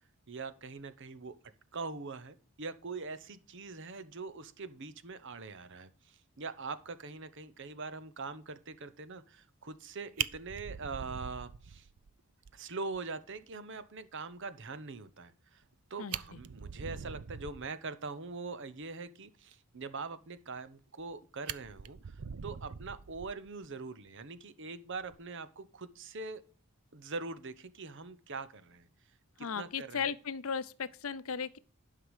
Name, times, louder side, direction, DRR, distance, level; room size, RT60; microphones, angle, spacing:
voice 1, 0.3-1.3 1.7-11.9 12.5-15.6 15.9-26.4 26.9-28.9 29.4-30.1, right 4 dB, 55° right, 0.9 m, -43 dB
Fire, 9.7-9.9 10.2-12.1 12.5-12.6 12.9-13.0 13.4-13.5 15.6-15.7 16.0-17.7 20.6-21.1 21.5-23.7 25.0-25.2, right 9 dB, 85° right, 0.6 m, -42 dB
voice 2, 29.4-31.6, left 6 dB, 65° left, 0.6 m, -36 dB
11.5 x 5.9 x 4.9 m
head